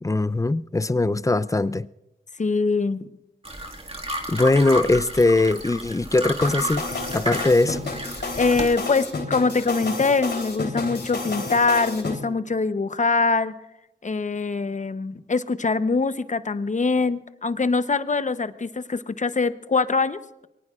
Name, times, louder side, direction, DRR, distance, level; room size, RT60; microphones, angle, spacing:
voice 1, 0.0-1.9 4.3-6.8 7.1-7.8, left 2 dB, 15° left, 0.5 m, -21 dB
voice 2, 2.4-3.1 8.4-13.5 14.0-20.5, left 4 dB, 40° left, 0.8 m, -23 dB
sound 1, 3.4-8.8, right 1 dB, 30° right, 1.9 m, -32 dB
sound 2, 6.4-12.2, left 3 dB, 70° left, 3.5 m, -30 dB
23.0 x 18.5 x 2.5 m
cardioid pair, 55°, 19 cm